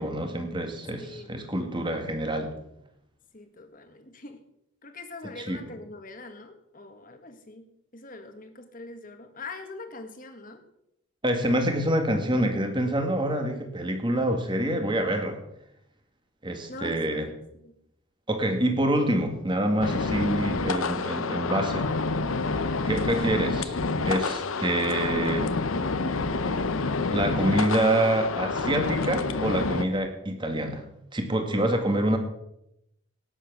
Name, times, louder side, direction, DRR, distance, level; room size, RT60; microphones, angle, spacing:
voice 1, 0.0-2.5 5.5-5.6 11.2-15.4 16.4-17.3 18.3-21.9 22.9-23.8 24.0-25.6 27.1-30.8 31.1-32.2, right 1 dB, 20° right, 5 dB, 1.9 m, -26 dB
voice 2, 1.0-1.4 3.3-4.4 4.8-7.7 7.9-10.6 16.7-17.2 17.5-17.7 22.6-22.9, left 3 dB, 40° left, 6 dB, 1.7 m, -43 dB
sound 1, 19.8-29.8, left 3 dB, 75° left, 0.9 m, -28 dB
18.0 x 7.7 x 6.2 m, 0.81 s
head